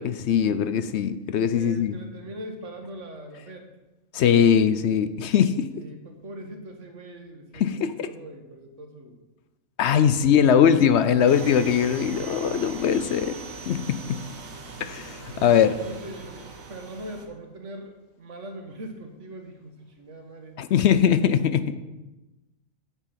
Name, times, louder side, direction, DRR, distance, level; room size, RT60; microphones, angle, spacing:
voice 1, 0.0-2.0 4.1-5.7 7.5-8.1 9.8-13.4 13.7-14.2 14.8-15.8 20.6-21.7, left 8 dB, 65° left, 12 dB, 0.8 m, -21 dB
voice 2, 1.5-3.7 5.7-9.2 10.1-10.4 15.6-20.6, right 1 dB, 65° right, 4 dB, 1.7 m, -41 dB
sound 1, 11.3-17.3, right 4 dB, 90° right, 1.7 m, -40 dB
8.1 x 8.1 x 5.7 m, 1.1 s
omnidirectional pair, 1.4 m